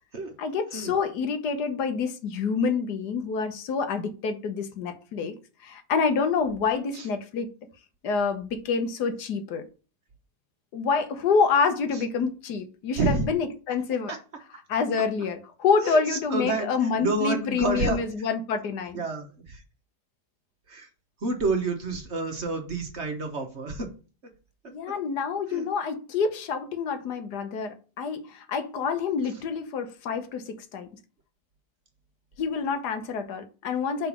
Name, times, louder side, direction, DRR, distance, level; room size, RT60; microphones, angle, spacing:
voice 1, 0.4-5.3 5.6-7.5 8.0-9.6 10.7-14.1 14.7-19.0 24.7-30.9 32.4-34.1, left 5 dB, 75° left, 1.5 m, -27 dB
voice 2, 15.8-18.0 18.9-19.6 20.7-20.9 21.2-23.9 25.5-25.7, right 3 dB, 45° right, 1.2 m, -29 dB
5.7 x 4.0 x 5.9 m
omnidirectional pair, 1.8 m